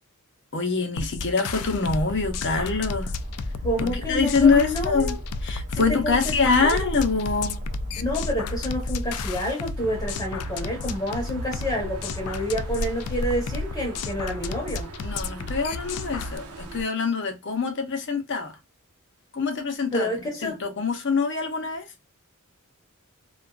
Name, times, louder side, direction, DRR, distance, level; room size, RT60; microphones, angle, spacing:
voice 1, 0.5-3.1 3.8-5.1 5.4-7.6 15.0-18.5 19.3-20.1 20.4-21.8, left 4 dB, 55° left, 0.7 m, -24 dB
sound 1, 1.0-16.4, left 4 dB, 75° left, 0.3 m, -33 dB
Bird, 1.8-9.4, equal, 35° right, 0.5 m, -34 dB
voice 2, 3.6-5.2 5.7-6.9 8.0-14.9 19.9-20.6, equal, 20° left, 0.9 m, -29 dB
sound 2, 9.8-16.8, right 1 dB, 80° right, 0.7 m, -37 dB
2.4 x 2.3 x 2.2 m
head